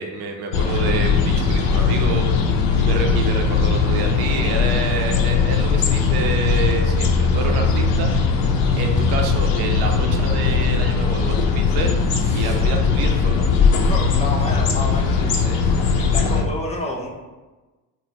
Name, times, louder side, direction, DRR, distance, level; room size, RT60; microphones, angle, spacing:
voice 1, 0.0-2.3 2.8-8.1 8.8-12.0 12.3-13.5, right 5 dB, 55° right, 3 dB, 0.6 m, -28 dB
sound 1, 0.5-16.4, left 5 dB, 65° left, 0.6 m, -19 dB
voice 2, 12.2-12.6 13.8-15.6 16.0-17.1, left 2 dB, 15° left, -1 dB, 0.6 m, -29 dB
2.6 x 2.1 x 3.2 m, 1.2 s
hypercardioid pair, 55°, 48 cm